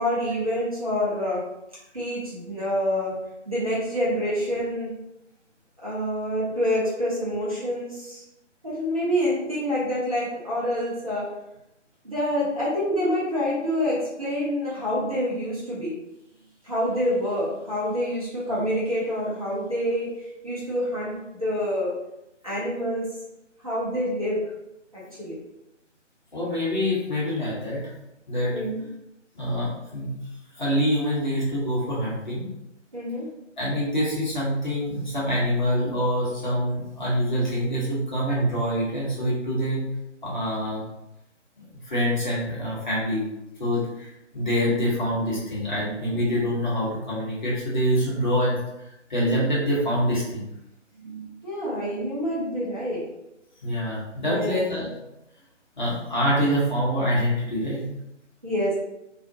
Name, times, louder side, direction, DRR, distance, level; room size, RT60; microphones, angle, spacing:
voice 1, 0.0-1.4 1.9-3.1 3.5-4.9 5.8-8.2 8.6-11.3 12.0-15.9 16.6-20.1 20.4-21.9 22.4-23.1 23.6-24.4 24.9-25.4 28.5-28.8 32.9-33.3 51.0-53.0 54.2-54.6 58.4-58.7, equal, 30° right, -9 dB, 0.6 m, -27 dB
voice 2, 26.3-27.8 28.3-28.6 29.3-30.1 30.5-32.5 33.6-39.8 40.2-40.8 41.6-43.2 43.6-48.6 49.1-50.5 53.6-54.9 55.8-57.9, equal, 40° left, -7 dB, 0.9 m, -25 dB
2.4 x 2.0 x 2.6 m, 0.87 s
figure-of-eight pair, 155°, 37 cm